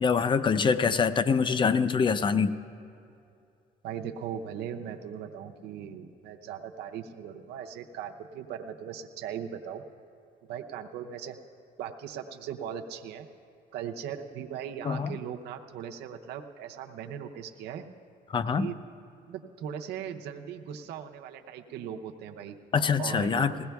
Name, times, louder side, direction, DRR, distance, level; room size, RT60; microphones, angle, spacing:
voice 1, 0.0-2.6 14.8-15.1 18.3-18.7 22.7-23.5, left 5 dB, 30° left, 13 dB, 0.5 m, -24 dB
voice 2, 3.8-9.8 10.5-11.4 11.8-13.3 13.7-17.8 18.5-18.8 19.3-22.6 23.0-23.6, right 8 dB, 80° right, 3 dB, 0.7 m, -39 dB
20.5 x 16.5 x 2.3 m, 2.6 s
cardioid pair, 110°, 17 cm